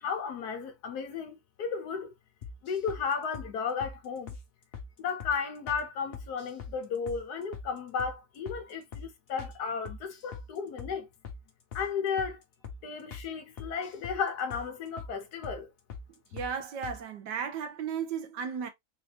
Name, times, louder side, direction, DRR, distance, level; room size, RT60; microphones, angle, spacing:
voice 1, 0.0-2.1 2.6-4.3 5.0-11.1 11.7-12.4 12.8-15.7, left 6 dB, 65° left, 1.2 m, -34 dB
sound 1, 2.4-3.0 3.3-3.5 3.8-4.0 4.3-4.4 4.7-4.9 5.2-5.4 5.7-5.8 6.1-6.8 7.1-7.2 7.5-7.7 8.0-8.2 8.5-8.6 8.9-9.1 9.4-9.6 9.9-10.5 10.8-10.9 11.2-11.4 11.7-11.9 12.2-12.3 12.6-12.8 13.1-13.3 13.6-14.2 14.5-14.7 15.0-15.1 15.4-15.6 15.9-16.1 16.4-16.5 16.8-17.0, left 5 dB, 45° left, 0.8 m, -42 dB
voice 2, 16.3-18.7, right 7 dB, 70° right, 1.4 m, -35 dB
4.0 x 2.7 x 3.1 m
omnidirectional pair, 2.0 m